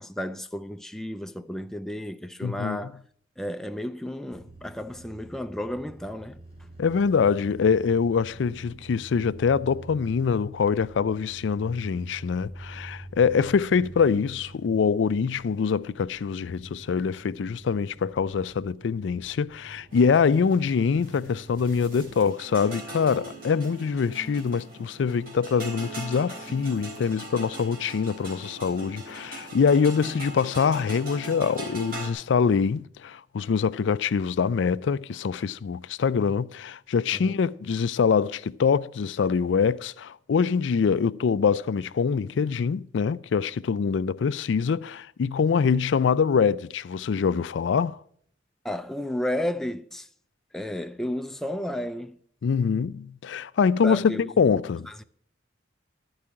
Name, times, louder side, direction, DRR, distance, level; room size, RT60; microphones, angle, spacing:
voice 1, 0.0-3.0 3.4-6.4 37.1-37.5 48.6-50.1 50.5-52.2 53.8-54.3 54.9-55.0, left 1 dB, ahead, 0.4 m, -32 dB
voice 2, 2.4-2.8 6.8-48.0 52.4-54.9, left 6 dB, 80° left, 0.4 m, -24 dB
sound 1, 4.3-22.2, right 2 dB, 35° right, 2.8 m, -46 dB
sound 2, 19.9-32.1, right 1 dB, 50° right, 3.6 m, -41 dB
12.5 x 4.8 x 8.7 m
head